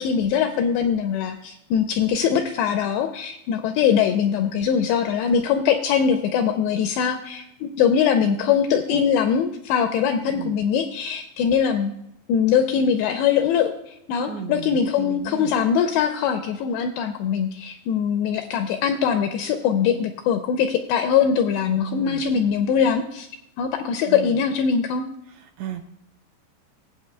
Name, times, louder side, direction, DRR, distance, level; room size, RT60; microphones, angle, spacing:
voice 1, 0.0-11.9 12.3-23.3 23.6-25.1, left 7 dB, 85° left, 6 dB, 2.5 m, -22 dB
voice 2, 10.2-10.6 14.3-15.5 21.7-22.2 24.1-24.4 25.6-25.9, right 8 dB, 80° right, 5 dB, 2.5 m, -34 dB
20.0 x 7.9 x 2.2 m, 0.81 s
omnidirectional pair, 5.5 m